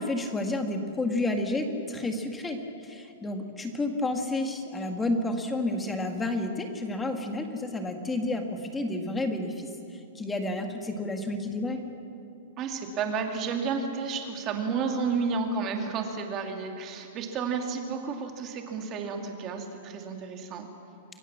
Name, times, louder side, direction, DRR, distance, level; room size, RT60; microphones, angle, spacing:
voice 1, 0.0-11.8, left 2 dB, 5° left, 4 dB, 1.8 m, -30 dB
voice 2, 12.6-20.7, right 5 dB, 20° right, 4 dB, 2.5 m, -31 dB
29.0 x 22.5 x 7.4 m, 2.5 s
supercardioid pair, 175°, 0 cm